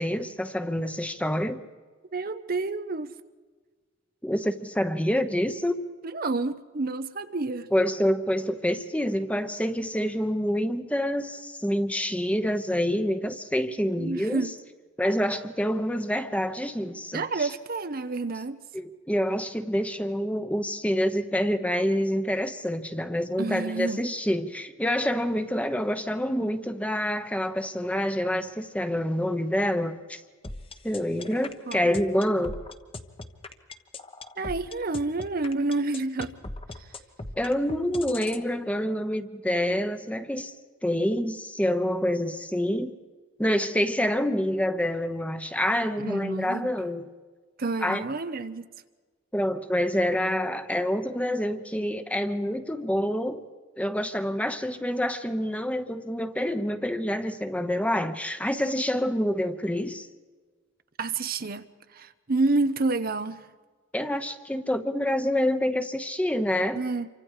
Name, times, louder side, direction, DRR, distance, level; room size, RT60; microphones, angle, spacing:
voice 1, 0.0-1.6 4.2-5.9 7.7-14.5 15.0-17.5 18.7-30.2 30.8-32.6 37.4-40.5 40.8-42.9 43.4-47.1 47.8-48.0 49.3-53.4 53.8-60.1 63.9-66.8, equal, 5° left, 1.0 m, -27 dB
voice 2, 2.1-3.1 6.1-7.7 14.0-14.5 17.1-18.6 23.4-24.1 31.7-31.9 34.4-36.3 46.0-46.7 47.6-48.7 61.0-61.7 61.9-63.4 66.7-67.1, right 3 dB, 50° right, 0.8 m, -29 dB
sound 1, 30.4-38.4, left 2 dB, 30° left, 1.2 m, -39 dB
28.0 x 25.0 x 4.9 m
head